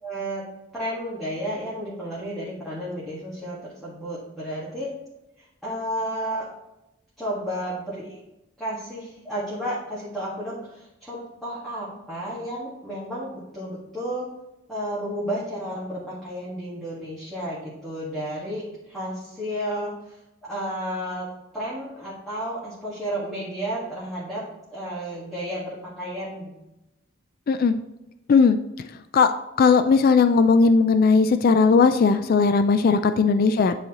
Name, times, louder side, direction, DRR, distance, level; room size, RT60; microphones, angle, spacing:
voice 1, 0.0-0.5 0.7-4.9 5.4-6.5 7.2-8.2 8.6-14.3 14.7-21.3 21.5-24.4 24.7-26.5, equal, ahead, -9 dB, 1.5 m, -32 dB
voice 2, 29.6-33.7, left 5 dB, 45° left, 10 dB, 0.3 m, -17 dB
9.6 x 4.1 x 2.9 m, 0.95 s
head